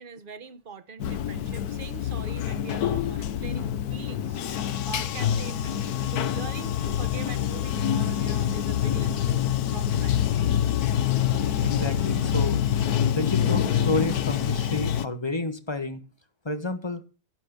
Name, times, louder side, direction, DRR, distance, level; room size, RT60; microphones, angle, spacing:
voice 1, 0.0-9.4 9.7-10.5, right 5 dB, 40° right, 1.1 m, -43 dB
Bathtub (filling or washing), 1.0-15.1, left 10 dB, 75° left, 1.4 m, -26 dB
voice 2, 11.6-12.6 13.1-16.0 16.4-17.0, left 2 dB, 15° left, 1.4 m, -30 dB
12.0 x 9.8 x 6.7 m
omnidirectional pair, 1.7 m